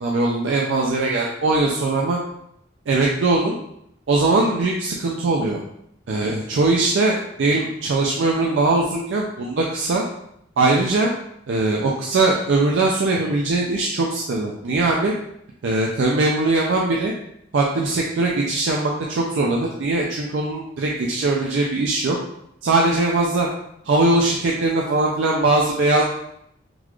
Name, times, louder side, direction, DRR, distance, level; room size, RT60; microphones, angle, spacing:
voice 1, 0.0-2.2 2.9-3.6 4.1-5.6 6.1-10.0 10.6-11.1 11.5-15.1 15.6-17.1 17.5-22.2 22.6-23.5 23.8-26.0, right 2 dB, 70° right, -2 dB, 0.4 m, -20 dB
3.8 x 2.4 x 3.1 m, 0.76 s
head